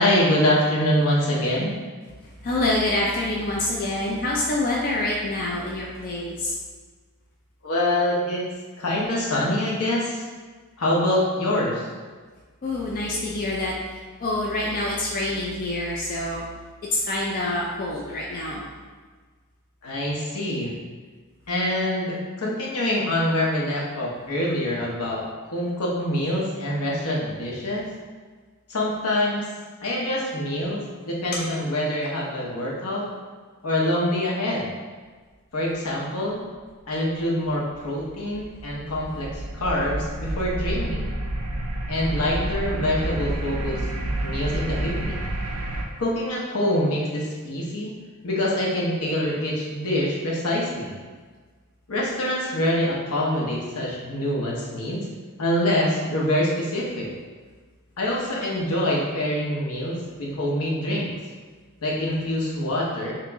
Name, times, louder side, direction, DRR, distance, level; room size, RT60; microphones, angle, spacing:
voice 1, 0.0-1.7 7.6-8.5 8.8-10.2 10.8-11.8 19.8-20.7 21.5-25.2 25.5-27.8 28.7-29.5 29.8-33.1 33.6-34.7 35.5-36.4 36.9-41.1 41.9-43.8 44.2-45.2 46.0-47.9 48.2-51.0 51.9-55.1 55.4-57.1 58.0-61.1 61.8-63.1, left 1 dB, 75° left, -4 dB, 0.8 m, -25 dB
voice 2, 2.2-6.5 12.6-16.5 16.9-18.6, left 2 dB, 40° left, -4 dB, 0.4 m, -26 dB
sound 1, 37.7-45.9, right 1 dB, 70° right, 0.4 m, -29 dB
2.9 x 2.9 x 3.4 m, 1.4 s
head